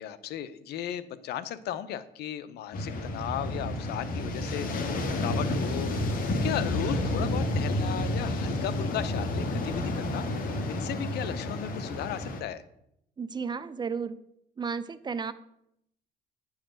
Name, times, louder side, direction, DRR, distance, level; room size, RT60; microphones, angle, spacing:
voice 1, 0.0-12.6, left 10 dB, 75° left, 15 dB, 0.7 m, -36 dB
sound 1, 2.7-12.4, left 1 dB, 55° left, 1.7 m, -30 dB
voice 2, 13.2-14.2 14.6-15.3, right 5 dB, 25° right, 14 dB, 0.6 m, -33 dB
9.9 x 4.9 x 7.5 m, 0.78 s
cardioid pair, 110°, 17 cm